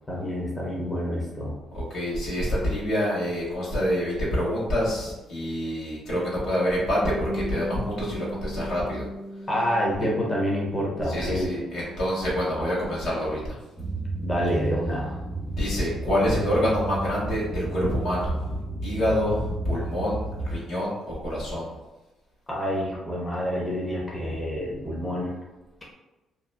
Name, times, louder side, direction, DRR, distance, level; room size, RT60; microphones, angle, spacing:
voice 1, 0.1-1.6 9.5-11.5 14.2-15.2 22.5-25.3, equal, 20° left, -4 dB, 0.7 m, -27 dB
voice 2, 1.7-9.1 11.0-13.6 15.5-18.5 18.8-21.7, equal, 75° left, -7 dB, 1.1 m, -27 dB
Bass guitar, 7.0-13.3, equal, 35° right, 0.3 m, -38 dB
sound 1, 13.8-20.6, right 2 dB, 50° left, 1.4 m, -32 dB
2.7 x 2.0 x 2.2 m, 1.1 s
cardioid pair, 90°, 0 cm